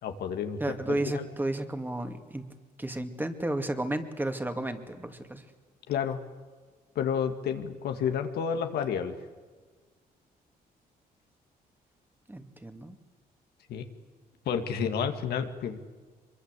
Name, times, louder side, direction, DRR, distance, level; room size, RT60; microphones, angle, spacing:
voice 1, 0.0-1.3 5.9-6.2 7.0-9.3 13.7-13.8 14.5-15.8, left 7 dB, 85° left, 6 dB, 2.2 m, -30 dB
voice 2, 0.6-2.4 2.8-5.4 12.3-13.0, right 1 dB, 10° right, 7 dB, 2.5 m, -32 dB
24.0 x 23.0 x 8.3 m, 1.4 s
cardioid pair, 95°, 16 cm